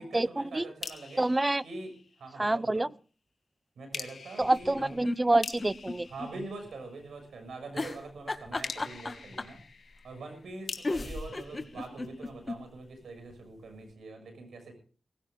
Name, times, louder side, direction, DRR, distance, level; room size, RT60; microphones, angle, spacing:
voice 1, 0.0-1.3 1.6-2.9 3.8-5.0 6.0-9.6 10.0-14.7, right 3 dB, 85° right, 6 dB, 6.7 m, -44 dB
sound 1, 0.8-2.5 3.9-7.3 8.6-12.5, left 5 dB, 65° left, 1.9 m, -45 dB
voice 2, 1.2-1.6 2.4-2.9 4.4-6.1, right 2 dB, 25° right, 20 dB, 0.6 m, -26 dB
sound 2, 4.4-6.3 6.7-6.8 7.7-9.6 10.5-10.6 10.8-12.6 13.0-13.1 13.3-13.4, left 2 dB, 35° left, 2.0 m, -35 dB
19.0 x 15.5 x 3.6 m, 0.40 s
cardioid pair, 60°, 0 cm